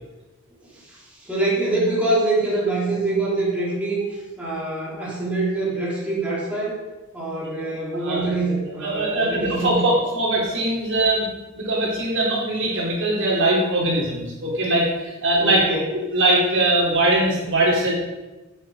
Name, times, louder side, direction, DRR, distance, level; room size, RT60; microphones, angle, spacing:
voice 1, 0.7-6.8 7.1-9.8 15.4-15.9, right 2 dB, 5° right, -7 dB, 4.1 m, -25 dB
voice 2, 8.8-11.3 11.5-15.8 16.1-17.9, right 1 dB, 60° right, -3 dB, 3.9 m, -21 dB
14.5 x 7.8 x 5.2 m, 1.1 s
head